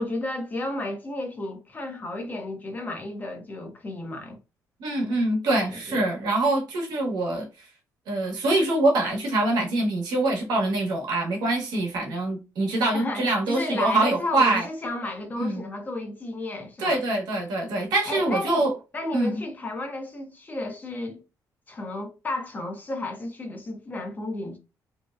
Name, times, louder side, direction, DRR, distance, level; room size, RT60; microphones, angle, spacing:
voice 1, 0.0-4.4 5.6-6.1 12.9-17.0 18.1-18.7 18.9-21.2 21.7-24.6, left 2 dB, 25° left, 0.6 m, -32 dB
voice 2, 4.8-7.5 8.1-14.7 15.4-15.6 16.8-18.7 19.1-19.4, right 2 dB, 90° right, 0.8 m, -24 dB
2.7 x 2.0 x 2.3 m
cardioid pair, 130°, 7 cm